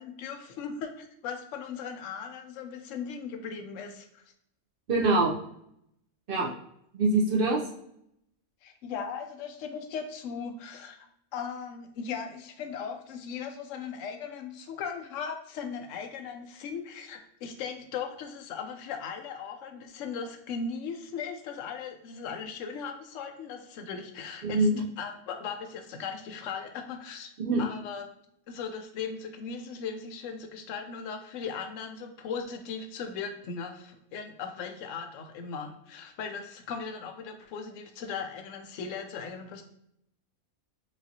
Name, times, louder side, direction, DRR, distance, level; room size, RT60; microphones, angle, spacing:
voice 1, 0.0-4.2 6.4-6.5 8.6-11.1 11.3-24.7 25.0-27.3 27.6-28.1 28.5-39.6, left 6 dB, 65° left, 5 dB, 0.9 m, -38 dB
voice 2, 4.9-5.4 6.3-6.5 6.9-7.6 24.4-24.8 27.4-27.6, right 2 dB, 55° right, -2 dB, 0.6 m, -24 dB
4.9 x 2.7 x 2.7 m, 0.75 s
omnidirectional pair, 1.5 m